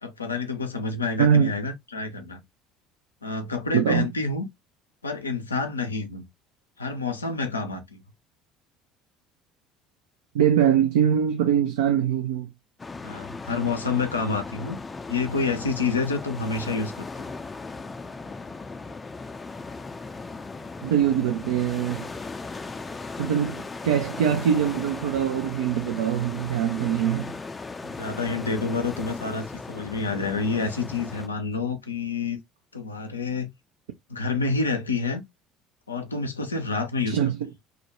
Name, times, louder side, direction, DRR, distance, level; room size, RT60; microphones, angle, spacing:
voice 1, 0.0-2.4 3.2-4.5 5.0-6.2 6.8-8.0 13.0-14.8 15.1-17.3 27.8-32.4 32.7-33.5 34.1-35.2 35.9-37.3, left 4 dB, 85° left, 0.4 m, -28 dB
voice 2, 1.2-1.5 3.7-4.1 10.3-12.5 20.8-22.1 23.2-27.3 37.1-37.4, right 9 dB, 75° right, 0.3 m, -23 dB
sound 1, 12.8-31.3, left 3 dB, 20° left, 0.4 m, -37 dB
2.3 x 2.1 x 2.9 m
figure-of-eight pair, 60°, 0 cm